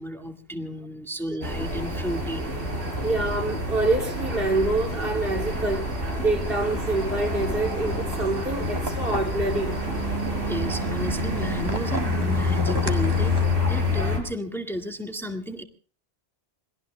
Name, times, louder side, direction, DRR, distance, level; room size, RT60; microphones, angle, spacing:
voice 1, 0.0-2.5 2.9-3.1 10.4-13.4 13.7-15.6, equal, ahead, 1.8 m, -33 dB
sound 1, 1.4-14.2, left 2 dB, 75° right, 5.1 m, -27 dB
voice 2, 3.0-5.9 6.2-9.7, right 2 dB, 55° right, 3.0 m, -26 dB
sound 2, 6.4-13.5, right 1 dB, 20° right, 2.1 m, -36 dB
28.0 x 21.5 x 2.2 m
omnidirectional pair, 1.1 m